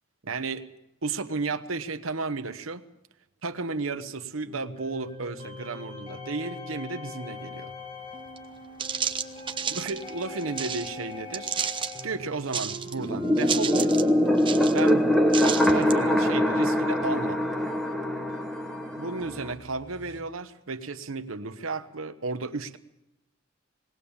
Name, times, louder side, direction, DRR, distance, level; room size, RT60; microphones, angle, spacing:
voice 1, 0.2-0.7 1.0-2.8 3.4-7.7 9.7-11.6 12.0-14.0 14.7-17.4 19.0-22.8, right 3 dB, 85° right, 9 dB, 1.0 m, -33 dB
sound 1, 4.5-20.2, left 2 dB, 30° left, 2.2 m, -42 dB
sound 2, 8.4-8.5 8.8-10.9 11.3-12.0 12.5-13.0 13.4-14.1 14.4-14.9 15.3-16.0, right 7 dB, 25° right, 0.8 m, -31 dB
sound 3, 13.0-19.5, equal, ahead, 1.2 m, -23 dB
20.0 x 18.5 x 7.2 m, 0.93 s
head